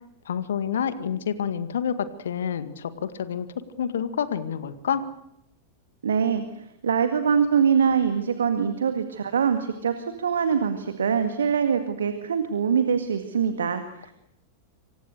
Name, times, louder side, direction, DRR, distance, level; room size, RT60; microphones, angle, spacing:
voice 1, 0.3-3.5 3.8-5.1, left 8 dB, 65° left, 11 dB, 1.9 m, -28 dB
voice 2, 6.0-6.4 6.8-14.1, right 7 dB, 70° right, 8 dB, 1.9 m, -23 dB
27.0 x 26.0 x 6.6 m, 0.79 s
figure-of-eight pair, 90°, 0 cm